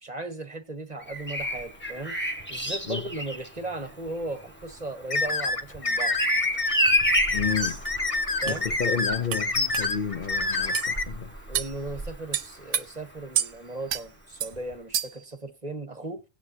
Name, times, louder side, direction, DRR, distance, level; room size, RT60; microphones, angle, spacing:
voice 1, 0.0-2.2 2.5-6.2 8.4-8.7 11.5-16.2, right 2 dB, 25° right, 1.4 m, -36 dB
Bird vocalization bird call bird song, 1.0-12.8 14.5-14.7, equal, 5° left, 1.6 m, -31 dB
sound 1, 5.1-11.0, left 3 dB, 25° left, 0.8 m, -27 dB
voice 2, 7.3-7.8 8.5-11.3, left 7 dB, 70° left, 0.4 m, -31 dB
sound 2, 7.9-8.0 8.5-8.6 9.3-9.4 9.7-9.9 10.7-10.9 11.5-11.7 12.3-12.8 13.3-13.5 13.9-14.0 14.4-14.5 14.9-15.2, right 10 dB, 65° right, 1.2 m, -28 dB
18.0 x 9.7 x 2.9 m
omnidirectional pair, 2.0 m